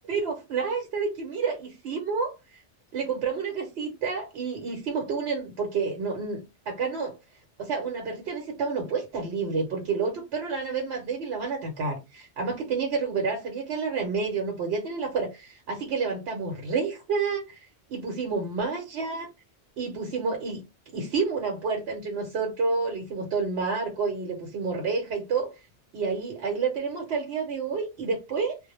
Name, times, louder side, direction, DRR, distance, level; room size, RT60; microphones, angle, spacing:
voice 1, 0.0-2.6 2.9-6.4 6.7-7.1 7.6-19.3 19.8-20.6 20.9-25.5 25.9-28.6, right 4 dB, 65° right, 0.9 m, -29 dB
2.1 x 2.0 x 2.9 m
omnidirectional pair, 1.3 m